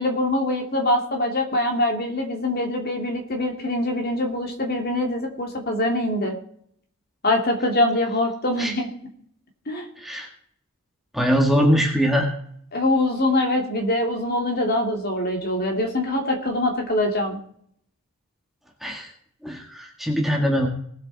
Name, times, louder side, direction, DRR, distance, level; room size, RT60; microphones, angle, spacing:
voice 1, 0.0-6.4 7.2-8.9 9.7-9.9 12.7-17.4, left 1 dB, 45° left, 2 dB, 2.6 m, -23 dB
voice 2, 10.0-10.3 11.1-12.3 18.8-19.1 19.4-20.7, equal, ahead, 0 dB, 2.0 m, -21 dB
19.5 x 7.5 x 4.2 m, 0.64 s
head